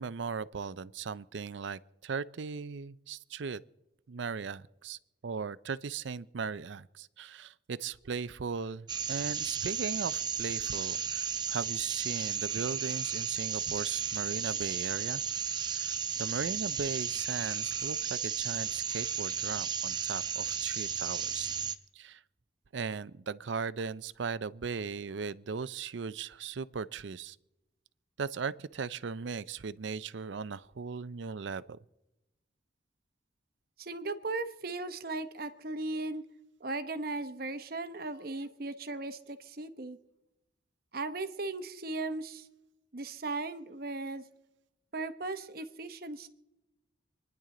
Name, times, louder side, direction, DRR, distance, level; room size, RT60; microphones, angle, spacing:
voice 1, 0.0-3.6 4.1-15.2 15.7-15.9 16.2-21.5 21.9-22.2 22.7-27.4 28.2-31.8, right 5 dB, 75° right, 0.5 m, -38 dB
sound 1, 8.9-21.8, right 7 dB, 25° right, 0.6 m, -34 dB
voice 2, 33.8-36.2 36.6-40.0 40.9-42.5 42.9-44.2 44.9-46.3, right 2 dB, 50° right, 0.9 m, -37 dB
27.0 x 10.5 x 3.8 m
head